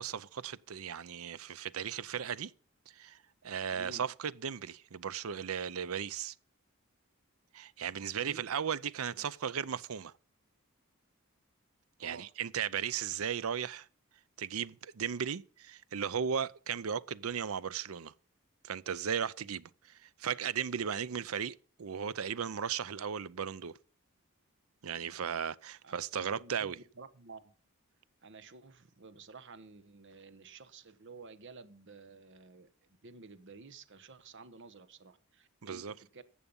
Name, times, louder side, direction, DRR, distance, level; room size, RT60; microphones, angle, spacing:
voice 1, 0.0-2.5 3.0-3.2 3.4-6.3 7.5-10.1 12.0-13.9 14.4-18.1 18.6-23.8 24.8-26.8 35.6-35.9, right 7 dB, 75° right, 0.6 m, -36 dB
voice 2, 3.7-4.0 8.2-8.4 9.2-9.3 12.0-12.3 25.8-25.9 26.3-27.5 28.2-32.7 33.0-36.2, right 4 dB, 60° right, 1.0 m, -52 dB
14.0 x 8.3 x 5.4 m
head